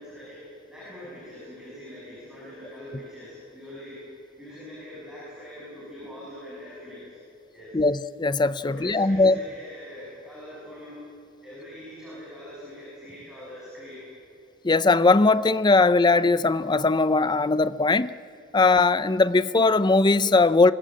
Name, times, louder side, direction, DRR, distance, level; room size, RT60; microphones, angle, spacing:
voice 1, 0.0-4.0 4.4-7.2 7.5-7.8 8.6-11.0 11.4-14.1, left 1 dB, 5° right, 7.0 m, -43 dB
voice 2, 7.7-9.4 14.6-18.1 18.5-20.7, left 3 dB, 20° left, 0.5 m, -20 dB
24.5 x 21.0 x 7.7 m
head